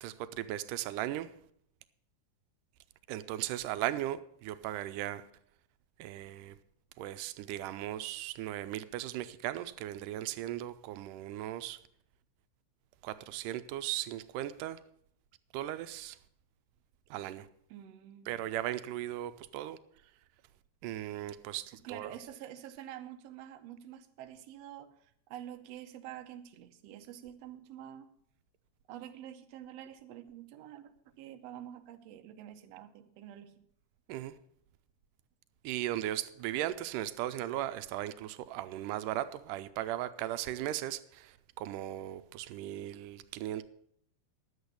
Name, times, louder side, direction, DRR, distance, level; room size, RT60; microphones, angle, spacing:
voice 1, 0.0-1.3 3.1-5.2 6.0-6.6 7.0-11.8 13.0-14.8 15.5-16.2 17.1-17.5 18.3-19.8 20.8-22.1 34.1-34.3 35.6-43.7, right 13 dB, 90° right, 2.2 m, -37 dB
voice 2, 17.7-18.5 21.7-28.1 28.9-33.6, right 11 dB, 70° right, 1.7 m, -48 dB
11.0 x 8.1 x 6.8 m
omnidirectional pair, 3.6 m